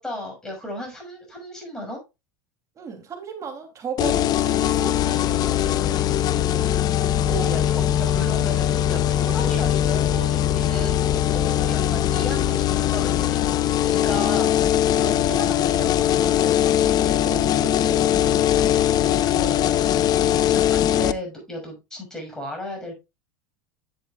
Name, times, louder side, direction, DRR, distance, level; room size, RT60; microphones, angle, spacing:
voice 1, 0.0-2.0 7.3-11.0 11.3-14.6 14.9-16.0 17.2-17.9 19.0-23.0, left 1 dB, 5° left, 6.1 m, -35 dB
voice 2, 2.7-6.7 15.4-17.2 17.6-18.6, right 6 dB, 30° right, 3.0 m, -38 dB
sound 1, 4.0-21.1, left 11 dB, 35° left, 0.6 m, -21 dB
11.0 x 8.0 x 2.4 m
supercardioid pair, 125°, 11 cm